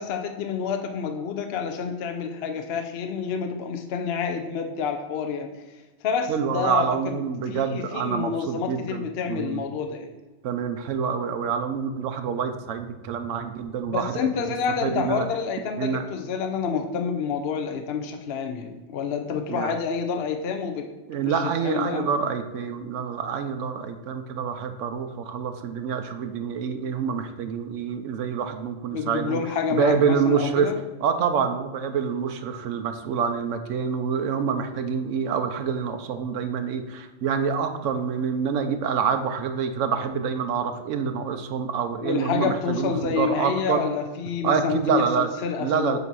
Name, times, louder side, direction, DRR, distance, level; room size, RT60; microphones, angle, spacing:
voice 1, 0.0-5.5 6.0-6.9 7.1-10.1 13.9-20.9 21.3-22.1 28.9-30.7 42.0-46.0, left 6 dB, 60° left, 5 dB, 0.8 m, -28 dB
voice 2, 6.3-9.6 10.4-14.5 14.8-15.3 15.8-16.1 19.5-19.7 21.1-29.4 29.7-30.7 31.0-43.8 44.4-45.3 45.6-46.0, right 6 dB, 85° right, 7 dB, 1.0 m, -26 dB
8.0 x 2.8 x 6.0 m, 1.2 s
omnidirectional pair, 1.3 m